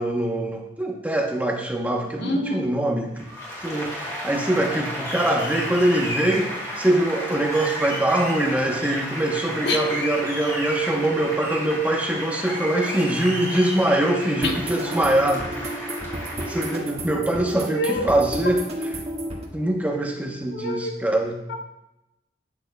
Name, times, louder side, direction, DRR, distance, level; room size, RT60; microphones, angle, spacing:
voice 1, 0.0-3.3 3.6-15.9 16.5-19.1 19.5-21.4, right 1 dB, 10° right, 1 dB, 0.9 m, -23 dB
voice 2, 2.2-2.7 9.6-9.8 14.4-14.6 17.7-18.1 20.5-21.0 21.5-21.6, left 1 dB, 75° left, 2 dB, 1.3 m, -26 dB
Applause, 3.2-16.8, equal, 20° left, 2.3 m, -32 dB
sound 1, 14.4-19.5, right 1 dB, 35° right, 1.6 m, -32 dB
12.0 x 8.9 x 2.3 m, 0.90 s
head